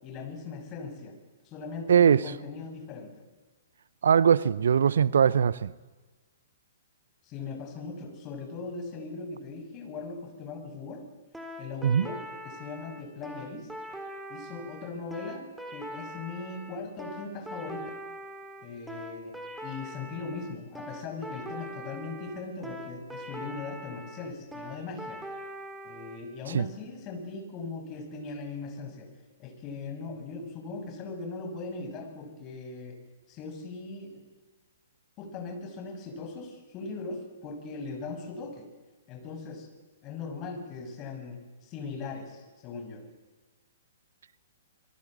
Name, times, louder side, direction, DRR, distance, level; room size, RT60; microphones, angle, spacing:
voice 1, 0.0-1.1 1.4-3.1 7.2-11.1 11.6-13.7 14.3-18.0 18.6-19.3 19.6-25.2 25.8-29.1 29.4-33.0 33.3-34.3 35.2-38.7 39.1-39.7 40.0-43.0, left 4 dB, 30° left, 6.2 m, -39 dB
voice 2, 1.9-2.3 4.0-5.7 11.8-12.1 26.5-26.7, right 7 dB, 65° right, 0.7 m, -21 dB
sound 1, 11.3-26.2, equal, 5° right, 4.1 m, -42 dB
26.0 x 22.5 x 7.6 m
figure-of-eight pair, 115°, 0 cm